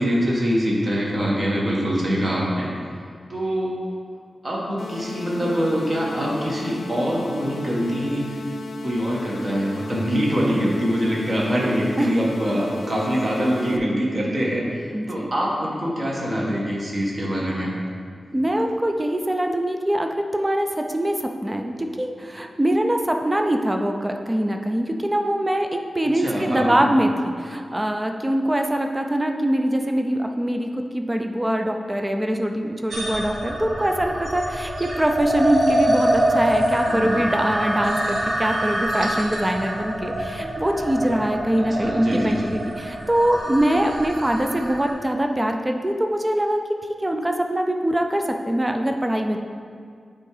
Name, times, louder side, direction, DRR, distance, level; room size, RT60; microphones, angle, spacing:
voice 1, 0.0-2.8 3.3-3.8 4.4-8.4 8.8-17.7 26.0-26.9 36.8-37.3 41.6-42.4, equal, 35° right, -4 dB, 1.4 m, -24 dB
sound 1, 4.8-13.8, left 4 dB, 75° left, 0.5 m, -36 dB
voice 2, 14.9-15.3 18.3-49.4, right 1 dB, 15° right, 4 dB, 0.4 m, -23 dB
sound 2, 32.9-44.9, right 1 dB, 65° right, 1.1 m, -25 dB
8.7 x 3.6 x 4.8 m, 2.1 s
wide cardioid pair, 135°, 0 cm